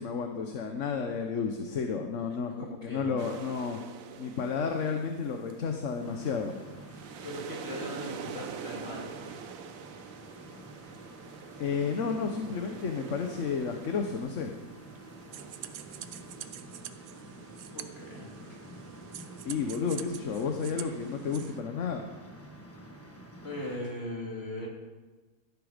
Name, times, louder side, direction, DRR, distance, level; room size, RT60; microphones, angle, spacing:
voice 1, 0.0-3.8 4.2-6.5 11.6-14.5 19.4-22.0, left 5 dB, 55° left, 4 dB, 1.3 m, -32 dB
voice 2, 2.6-3.1 7.2-9.1 17.7-18.6 23.4-24.7, left 1 dB, 35° left, -2 dB, 3.6 m, -39 dB
sound 1, 3.2-16.5, right 8 dB, 60° right, 1.1 m, -46 dB
sound 2, 6.0-23.8, equal, 10° left, 1.3 m, -49 dB
sound 3, 15.3-21.6, right 10 dB, 85° right, 1.3 m, -45 dB
16.5 x 12.0 x 5.2 m, 1.3 s
omnidirectional pair, 1.7 m